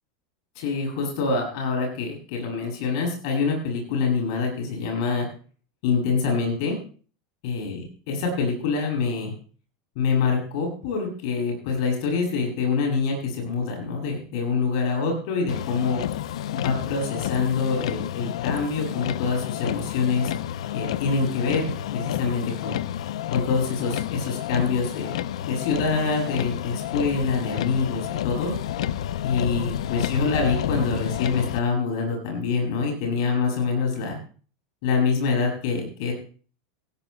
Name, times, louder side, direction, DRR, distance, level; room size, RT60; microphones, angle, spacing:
voice 1, 0.6-5.3 5.8-6.8 7.4-9.3 10.0-16.0 16.5-20.3 20.7-22.8 23.3-25.2 25.4-28.5 29.2-34.2 34.8-36.1, left 4 dB, 55° left, 1 dB, 7.5 m, -25 dB
Motor vehicle (road), 15.5-31.6, left 11 dB, 85° left, 0.5 m, -30 dB
18.0 x 16.5 x 2.2 m, 0.40 s
supercardioid pair, 170°, 3 cm